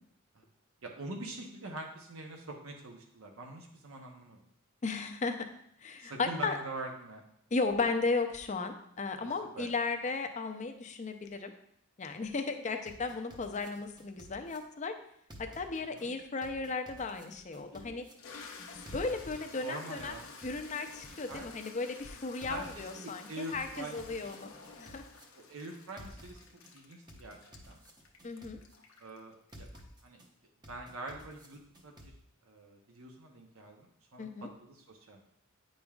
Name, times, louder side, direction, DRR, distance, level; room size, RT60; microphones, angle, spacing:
voice 1, 0.8-4.4 6.0-7.2 9.2-9.7 15.8-16.1 19.6-20.3 21.1-21.5 22.4-24.3 25.3-26.4 26.7-27.4 27.7-27.8 29.0-29.7 30.0-30.2 30.7-32.1 32.4-35.2, right 2 dB, 75° right, 1 dB, 0.8 m, -44 dB
voice 2, 4.8-5.4 5.8-6.6 7.5-11.5 12.0-15.0 15.4-18.1 18.6-20.1 20.4-24.5 24.8-25.0 28.2-28.6 34.2-34.5, left 4 dB, 35° left, 6 dB, 0.5 m, -35 dB
sound 1, 12.9-14.6 15.3-16.0 16.4-18.1 18.9-19.6 20.0-21.7 22.4-23.2 23.5-25.2 26.0-26.7 27.1-28.7 29.5-30.3 30.6-32.1, equal, 20° right, 0.7 m, -53 dB
Toilet flush, 16.9-17.0 17.6-30.1, left 4 dB, 70° left, 0.7 m, -52 dB
8.8 x 5.2 x 2.4 m, 0.73 s
head